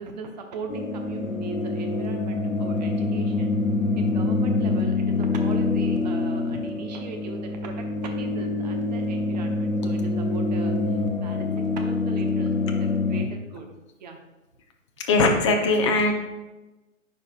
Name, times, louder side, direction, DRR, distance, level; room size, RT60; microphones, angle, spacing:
voice 1, 0.0-3.6 4.0-13.7 14.0-14.2, right 4 dB, 35° right, 4 dB, 0.9 m, -39 dB
sound 1, 0.7-13.3, left 3 dB, 90° left, 0.9 m, -25 dB
voice 2, 15.0-16.1, left 3 dB, 25° left, 3 dB, 0.6 m, -20 dB
9.5 x 4.8 x 2.4 m, 1.1 s
figure-of-eight pair, 135°, 39 cm